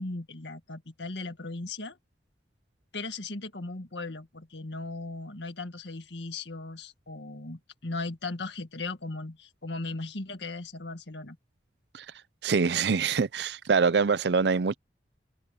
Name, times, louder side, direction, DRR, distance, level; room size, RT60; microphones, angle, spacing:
voice 1, 0.0-2.0 2.9-11.4, left 3 dB, 80° left, 1.9 m, -37 dB
voice 2, 12.4-14.7, right 5 dB, 65° right, 0.5 m, -24 dB
head